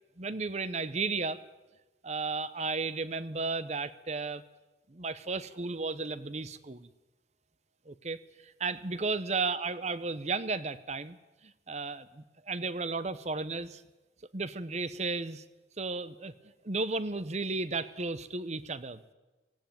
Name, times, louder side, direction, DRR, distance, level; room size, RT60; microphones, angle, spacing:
voice 1, 0.2-1.4 2.0-4.4 4.9-6.9 7.9-11.2 11.4-13.8 14.3-15.4 15.8-16.3 16.6-19.0, right 3 dB, 35° right, 15 dB, 0.8 m, -34 dB
17.5 x 17.0 x 9.3 m, 1.1 s
head